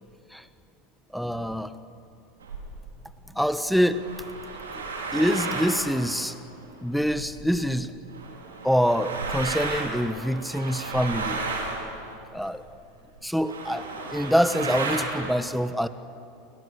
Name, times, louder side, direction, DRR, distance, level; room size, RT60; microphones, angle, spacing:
voice 1, 1.1-1.7 3.3-4.0 4.7-4.8 5.1-6.4 6.8-7.9 8.6-11.4 12.3-12.6 13.2-15.9, equal, ahead, 12 dB, 1.4 m, -25 dB
sound 1, 2.4-2.9 3.7-7.7 8.1-12.7 13.2-13.3 13.4-15.3, right 3 dB, 75° right, 4.3 m, -34 dB
30.0 x 29.5 x 6.6 m, 2.5 s
figure-of-eight pair, 80°, 0 cm